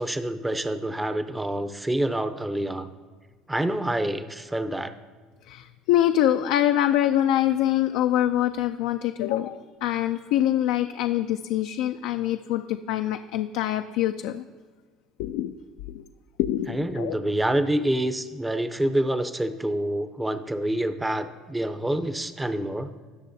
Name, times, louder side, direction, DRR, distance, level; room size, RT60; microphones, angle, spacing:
voice 1, 0.0-2.9 3.5-4.9 16.7-22.9, right 1 dB, 10° right, 10 dB, 0.6 m, -27 dB
voice 2, 5.5-14.4 15.2-15.5 15.9-16.0 16.4-17.2, left 12 dB, 80° left, 7 dB, 0.3 m, -24 dB
19.0 x 6.4 x 2.7 m, 1.4 s
supercardioid pair, 90°, 0 cm